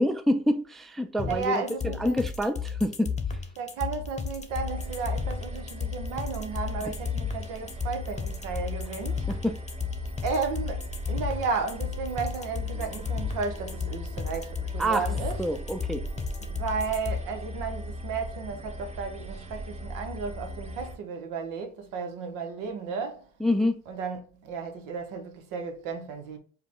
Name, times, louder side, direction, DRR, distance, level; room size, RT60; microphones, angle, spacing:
voice 1, 0.0-3.1 9.3-9.6 14.8-15.1 15.4-16.1 23.4-23.8, equal, ahead, 0.3 m, -27 dB
sound 1, 1.2-17.2, left 6 dB, 20° left, 0.8 m, -33 dB
voice 2, 1.2-2.3 3.6-9.3 10.2-15.4 16.4-23.3 23.9-26.4, right 5 dB, 75° right, 1.0 m, -33 dB
sound 2, 4.5-20.9, right 1 dB, 20° right, 1.0 m, -39 dB
4.7 x 2.2 x 3.6 m
supercardioid pair, 70°, 32 cm